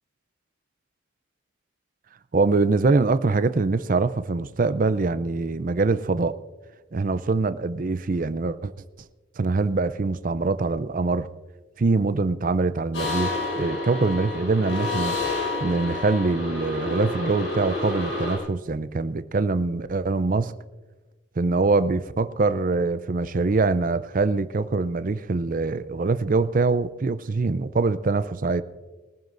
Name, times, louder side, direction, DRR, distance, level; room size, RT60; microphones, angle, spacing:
voice 1, 2.3-6.4 6.9-8.7 9.4-11.3 11.8-15.2 15.6-20.5 21.4-28.6, right 3 dB, 40° right, 13 dB, 0.5 m, -24 dB
sound 1, 12.9-18.4, left 2 dB, 65° left, 4.8 m, -29 dB
22.0 x 14.5 x 2.6 m, 1.2 s
head